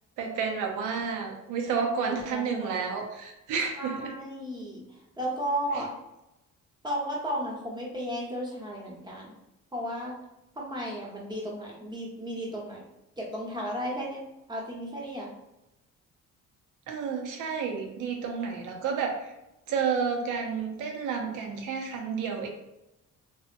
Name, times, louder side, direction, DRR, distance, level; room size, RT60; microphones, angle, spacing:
voice 1, 0.2-4.1 5.7-5.8 16.9-19.3 19.7-22.5, right 6 dB, 85° right, 3 dB, 0.6 m, -31 dB
voice 2, 2.3-2.9 3.8-4.8 5.2-5.9 6.8-9.3 9.7-10.1 10.6-12.8 13.2-14.2 14.5-15.3, equal, 15° right, -3 dB, 0.8 m, -34 dB
2.8 x 2.0 x 2.5 m, 0.92 s
cardioid pair, 90°, 30 cm